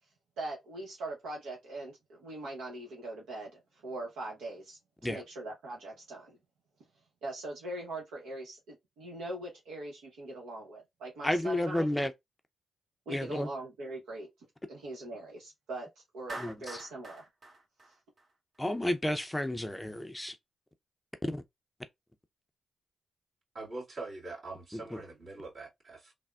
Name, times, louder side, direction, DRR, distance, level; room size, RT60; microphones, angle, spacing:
voice 1, 0.4-6.4 7.2-11.9 13.1-14.3 14.7-15.9 16.1-17.2, right 2 dB, 80° right, 0.8 m, -41 dB
voice 2, 11.2-12.1 13.1-13.5 16.4-16.8 18.6-20.4 21.3-21.4 24.7-24.8, left 1 dB, 10° left, 0.5 m, -32 dB
Clapping, 16.3-18.6, right 2 dB, 45° right, 0.9 m, -45 dB
voice 3, 23.5-26.1, right 3 dB, 60° right, 2.0 m, -43 dB
3.4 x 2.1 x 2.3 m
supercardioid pair, 50°, 0 cm